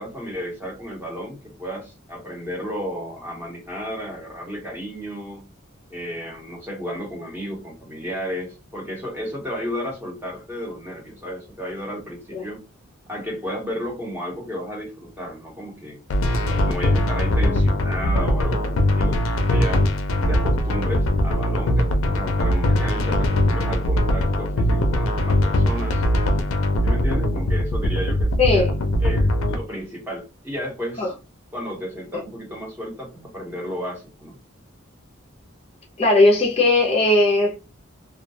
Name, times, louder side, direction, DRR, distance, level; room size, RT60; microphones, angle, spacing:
voice 1, 0.0-5.5 5.9-12.6 13.1-16.0 16.4-19.9 20.3-26.0 26.8-28.7 29.0-31.1 31.5-34.4, equal, 10° right, 0.8 m, -33 dB
sound 1, 16.1-29.6, left 1 dB, 90° left, 0.4 m, -21 dB
voice 2, 28.4-28.7 31.0-31.1 32.1-32.2 36.0-37.6, left 2 dB, 30° left, 0.5 m, -18 dB
2.3 x 2.1 x 2.6 m
head